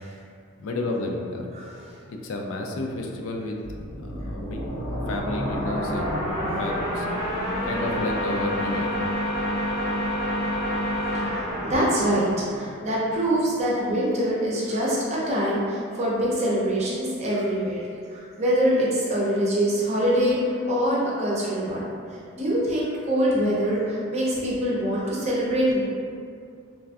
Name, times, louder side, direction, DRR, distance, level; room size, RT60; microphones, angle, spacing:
voice 1, 0.6-1.5 2.2-3.6 4.0-4.6 5.1-7.1 7.6-9.0, left 2 dB, 70° left, 1 dB, 0.3 m, -31 dB
voice 2, 1.5-2.0 6.5-6.6 9.8-9.9 11.0-21.8 22.1-25.8, equal, 30° right, -6 dB, 0.5 m, -24 dB
sound 1, 3.6-13.1, equal, 90° left, 0.9 m, -28 dB
3.3 x 2.5 x 2.3 m, 2.4 s
head